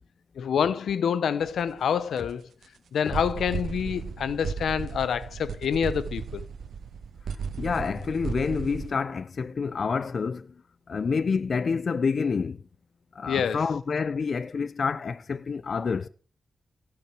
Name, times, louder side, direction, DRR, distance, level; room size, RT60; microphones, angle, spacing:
voice 1, 0.3-2.5 2.9-6.4 13.3-13.6, left 7 dB, 90° left, 0.8 m, -27 dB
sound 1, 1.4-1.7 2.2-2.3 2.6-2.7 3.1-8.9, right 6 dB, 85° right, 1.4 m, -35 dB
voice 2, 7.6-10.5 10.9-12.6 13.1-16.1, left 5 dB, 60° left, 0.7 m, -28 dB
17.0 x 6.2 x 7.6 m
cardioid pair, 75°, 0 cm